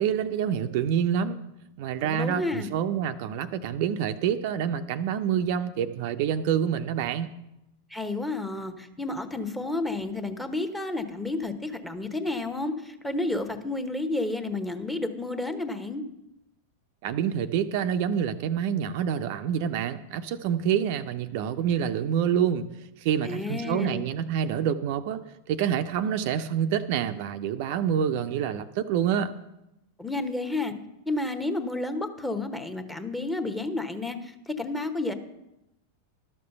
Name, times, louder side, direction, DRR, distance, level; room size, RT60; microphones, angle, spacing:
voice 1, 0.0-1.4 1.8-7.3 17.0-22.7 23.0-25.2 25.5-29.4, right 8 dB, 50° right, 8 dB, 0.5 m, -27 dB
voice 2, 2.0-2.7 7.9-16.0 23.2-24.1 30.0-30.7 31.1-35.1, left 2 dB, 5° left, 8 dB, 1.0 m, -31 dB
12.0 x 6.7 x 6.8 m, 0.90 s
figure-of-eight pair, 90°, 0 cm